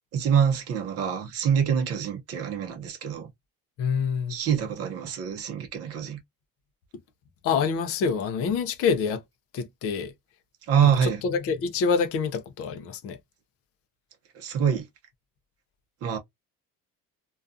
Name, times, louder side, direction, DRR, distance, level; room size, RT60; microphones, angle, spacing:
voice 1, 0.1-3.3 4.3-6.2 10.7-11.2 14.3-14.9 16.0-16.2, right 8 dB, 45° right, 0.7 m, -25 dB
voice 2, 3.8-4.4 7.4-9.2 9.5-10.1 11.0-13.2, left 5 dB, 45° left, 0.5 m, -26 dB
2.4 x 2.3 x 2.5 m
cardioid pair, 170°, 34 cm